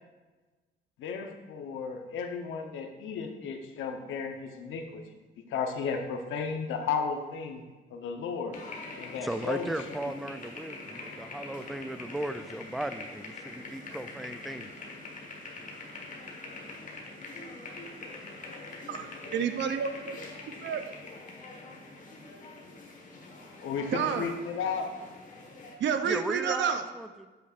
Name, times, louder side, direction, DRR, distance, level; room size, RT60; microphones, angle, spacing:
voice 1, 1.0-5.0 5.5-7.6 7.9-8.6 9.0-9.7 16.5-16.7 19.2-19.3 23.6-24.9, left 6 dB, 85° left, 5 dB, 0.8 m, -34 dB
sound 1, 8.5-25.7, left 2 dB, 40° left, 1.4 m, -44 dB
voice 2, 9.2-14.7 26.0-27.3, right 1 dB, ahead, 10 dB, 0.3 m, -36 dB
voice 3, 18.9-20.2 20.6-20.8 23.9-24.4 25.8-26.8, right 7 dB, 65° right, 8 dB, 0.6 m, -30 dB
8.1 x 6.5 x 2.5 m, 1.2 s
cardioid pair, 90°, 20 cm